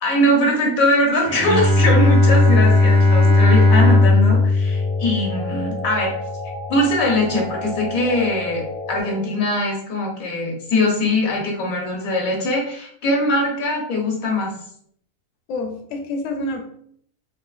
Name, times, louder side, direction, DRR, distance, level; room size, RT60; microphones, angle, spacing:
voice 1, 0.0-6.1 6.7-8.6 8.9-14.5, left 1 dB, 85° left, -1 dB, 1.4 m, -21 dB
Bowed string instrument, 1.2-6.5, left 2 dB, 40° right, 0.4 m, -16 dB
sound 1, 4.5-9.5, left 1 dB, 75° right, 1.2 m, -33 dB
voice 2, 15.5-16.6, left 2 dB, 70° left, 2 dB, 0.9 m, -28 dB
3.8 x 2.6 x 2.4 m, 0.65 s
omnidirectional pair, 1.4 m